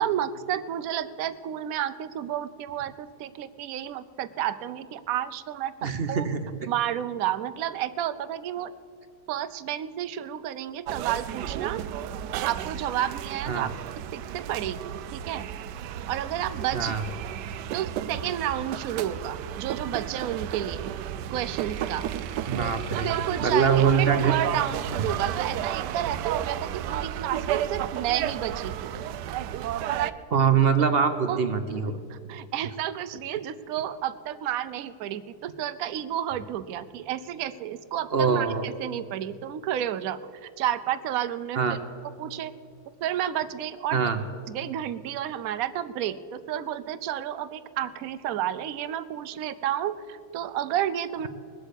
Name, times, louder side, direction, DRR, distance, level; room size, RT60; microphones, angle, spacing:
voice 1, 0.0-6.3 6.7-8.7 9.3-11.8 12.4-13.7 14.1-15.5 16.1-16.9 17.7-20.9 21.3-22.1 22.6-22.7 23.0-28.9 31.3-31.4 32.1-41.8 42.2-42.5 43.0-44.0 44.5-51.3, right 11 dB, 65° right, 13 dB, 1.0 m, -31 dB
voice 2, 5.8-6.5 13.5-13.7 16.7-17.0 22.5-23.1 23.4-24.3 25.0-25.1 30.3-32.0 38.1-38.7 41.6-41.8 43.9-44.2, right 6 dB, 50° right, 9 dB, 0.8 m, -23 dB
sound 1, 10.9-30.1, right 10 dB, 85° right, 1.2 m, -33 dB
20.5 x 8.1 x 8.3 m, 2.3 s
omnidirectional pair, 1.8 m